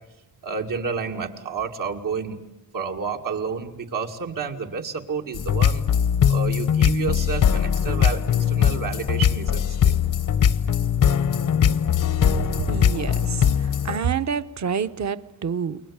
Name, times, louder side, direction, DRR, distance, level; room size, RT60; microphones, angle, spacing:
voice 1, 0.4-2.4 2.7-5.8 6.3-8.2 8.5-9.9, right 5 dB, 85° right, 2.5 m, -30 dB
sound 1, 5.3-14.0, left 8 dB, 75° left, 0.9 m, -21 dB
voice 2, 12.7-13.5 13.8-15.8, right 7 dB, 60° right, 0.9 m, -27 dB
29.5 x 22.5 x 8.8 m
wide cardioid pair, 115°, 32 cm